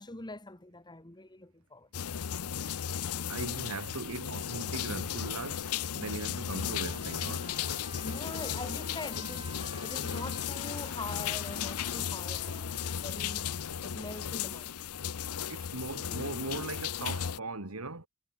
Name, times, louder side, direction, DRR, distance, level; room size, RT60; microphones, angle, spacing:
voice 1, 0.0-1.9 8.0-13.5 13.8-14.7, left 2 dB, 20° left, 1.6 m, -43 dB
sound 1, 1.9-17.4, left 8 dB, 85° left, 0.7 m, -35 dB
voice 2, 3.3-5.7 6.0-7.5 15.5-18.1, right 2 dB, 75° right, 2.7 m, -39 dB
Trumpet, 6.6-13.3, right 4 dB, 20° right, 1.8 m, -52 dB
head